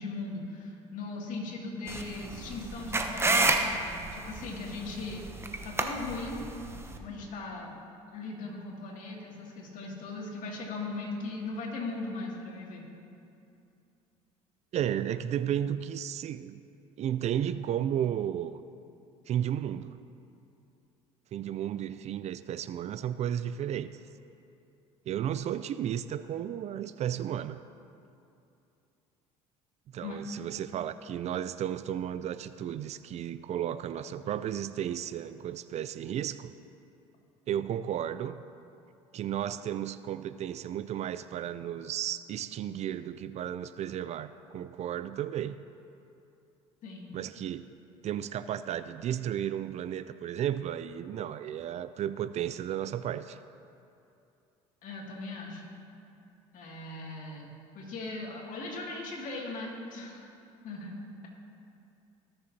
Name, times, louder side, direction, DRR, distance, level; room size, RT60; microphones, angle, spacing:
voice 1, 0.0-6.5 7.0-7.7 8.1-12.9 30.0-30.2 46.8-47.2 54.8-55.6 56.5-60.3 60.6-61.3, left 3 dB, 60° left, -2 dB, 2.4 m, -39 dB
sound 1, 1.9-7.0, right 2 dB, 15° right, 0.9 m, -30 dB
voice 2, 14.7-16.6 17.0-18.6 19.3-20.0 21.3-24.0 25.1-27.6 29.9-36.5 37.5-38.4 39.1-45.6 47.1-47.7 48.0-53.4, right 10 dB, 50° right, 13 dB, 0.4 m, -33 dB
17.5 x 6.8 x 2.8 m, 2.6 s
supercardioid pair, 75°, 15 cm